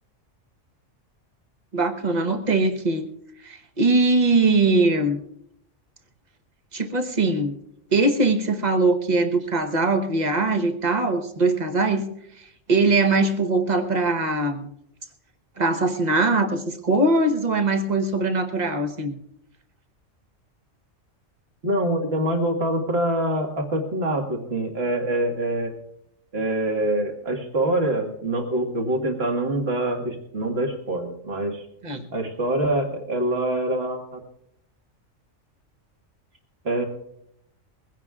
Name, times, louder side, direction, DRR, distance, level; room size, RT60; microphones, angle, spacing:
voice 1, 1.7-3.1 3.4-5.2 6.7-7.5 7.9-12.1 12.7-14.7 15.6-19.2 31.8-32.1, right 3 dB, 35° right, 6 dB, 1.2 m, -21 dB
voice 2, 21.6-25.7 26.3-31.6 32.1-34.2 36.6-36.8, right 1 dB, 50° right, 3 dB, 2.0 m, -25 dB
22.0 x 16.0 x 2.4 m, 0.76 s
omnidirectional pair, 1.3 m